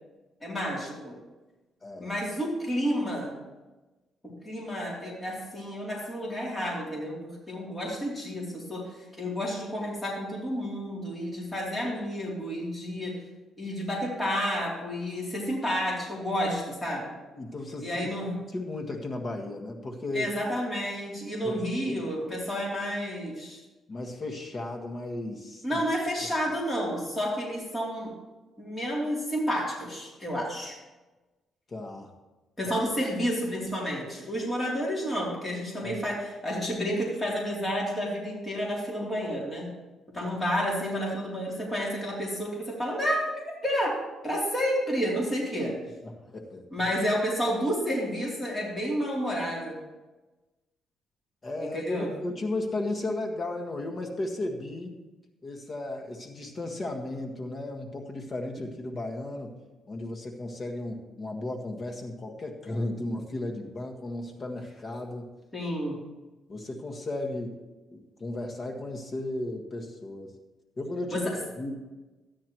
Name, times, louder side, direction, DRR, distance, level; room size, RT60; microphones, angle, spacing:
voice 1, 0.4-1.2 2.0-3.3 4.2-8.9 9.2-13.2 13.6-17.1 17.8-18.4 20.1-23.6 25.6-28.1 28.6-30.8 32.6-39.7 40.1-44.0 44.2-45.8 46.7-49.8 51.6-52.1 65.5-66.0 71.1-71.4, equal, 15° left, -4 dB, 3.1 m, -30 dB
voice 2, 1.8-2.1 17.3-18.1 18.5-20.3 21.4-22.0 23.9-25.8 31.7-32.1 32.7-32.8 35.8-36.1 46.0-46.6 51.4-55.0 55.4-59.5 59.9-65.3 66.5-67.5 67.9-70.4 70.8-71.3 71.6-71.7, left 2 dB, 35° left, 2 dB, 1.7 m, -35 dB
13.5 x 9.6 x 3.1 m, 1.1 s
cardioid pair, 90°, 0 cm